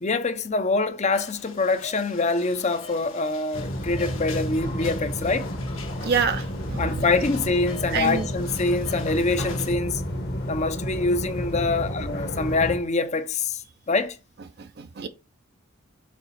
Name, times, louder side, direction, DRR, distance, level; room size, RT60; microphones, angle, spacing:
voice 1, 0.0-5.5 6.8-10.0 10.5-14.2, left 3 dB, 35° left, 0.6 m, -25 dB
sound 1, 1.1-9.7, left 4 dB, 75° left, 1.7 m, -43 dB
sound 2, 3.5-12.8, equal, 50° left, 1.3 m, -31 dB
voice 2, 6.0-7.0 7.9-8.3 14.6-15.1, right 6 dB, 50° right, 0.5 m, -27 dB
6.3 x 4.0 x 4.2 m
head